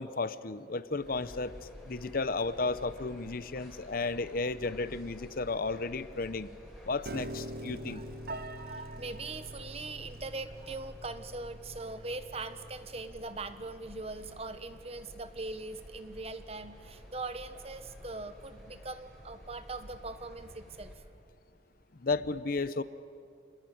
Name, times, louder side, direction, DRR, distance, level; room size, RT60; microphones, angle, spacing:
voice 1, 0.0-1.5 1.9-6.5 6.8-8.0 22.0-22.8, left 3 dB, 50° left, 14 dB, 0.8 m, -33 dB
sound 1, 1.0-21.0, equal, ahead, 5.3 m, -51 dB
Piano, 7.1-13.3, right 1 dB, 55° right, 0.9 m, -44 dB
voice 2, 7.9-21.0, right 3 dB, 35° right, 11 dB, 1.2 m, -41 dB
28.5 x 19.5 x 9.3 m, 2.4 s
head